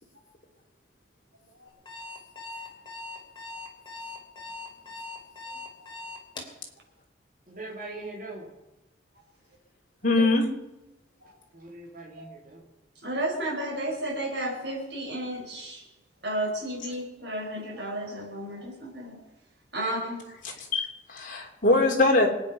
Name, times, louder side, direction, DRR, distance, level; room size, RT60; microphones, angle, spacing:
Alarm, 1.7-6.6, left 3 dB, 25° left, 3.0 m, -40 dB
voice 1, 7.5-8.5 11.5-12.6, right 2 dB, 45° right, -2 dB, 2.5 m, -41 dB
voice 2, 10.0-10.5 20.4-22.3, left 2 dB, 45° left, 0 dB, 3.3 m, -23 dB
voice 3, 13.0-15.8 16.2-19.2 19.7-20.2, right 1 dB, 65° right, 0 dB, 5.1 m, -32 dB
25.5 x 9.6 x 5.5 m, 1.0 s
head